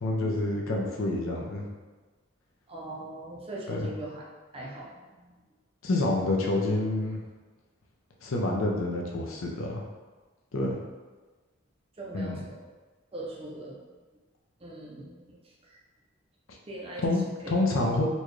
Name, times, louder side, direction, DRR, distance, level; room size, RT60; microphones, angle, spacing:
voice 1, 0.0-1.7 3.7-3.9 5.8-7.2 8.2-9.8 10.5-10.8 12.1-12.5 17.0-17.2 17.5-18.1, left 2 dB, 80° left, -1 dB, 0.6 m, -28 dB
voice 2, 2.7-4.2 4.5-5.2 12.0-12.6 13.1-13.8 14.6-15.4 15.7-15.8 16.7-17.0 17.4-17.5, right 2 dB, 25° right, -3 dB, 0.5 m, -40 dB
4.1 x 2.3 x 3.1 m, 1.3 s
head